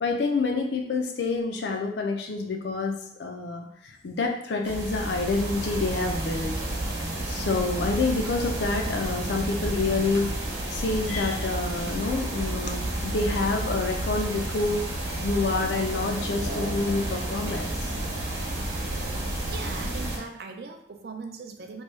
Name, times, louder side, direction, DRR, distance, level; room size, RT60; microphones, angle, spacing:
voice 1, 0.0-6.5 7.3-17.9, left 3 dB, 75° left, 3 dB, 0.5 m, -28 dB
sound 1, 4.6-20.2, right 1 dB, 85° right, 0.9 m, -31 dB
voice 2, 19.1-21.8, right 4 dB, 60° right, 4 dB, 0.4 m, -40 dB
3.0 x 2.2 x 3.1 m, 0.75 s
head